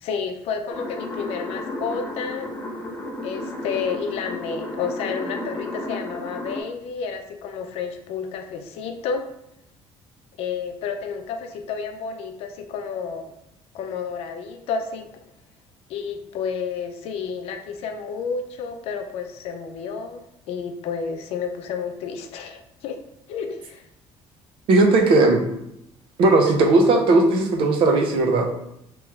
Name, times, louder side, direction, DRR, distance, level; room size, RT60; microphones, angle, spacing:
voice 1, 0.0-2.5 3.2-9.3 10.4-13.3 13.7-15.2 15.9-23.0 23.3-23.8, left 6 dB, 65° left, 6 dB, 0.5 m, -31 dB
sound 1, 0.7-6.6, left 1 dB, 15° left, 0.5 m, -33 dB
voice 2, 24.7-25.5 26.2-28.5, right 2 dB, 55° right, 4 dB, 0.6 m, -17 dB
3.1 x 3.0 x 3.5 m, 0.80 s
cardioid pair, 175°, 11 cm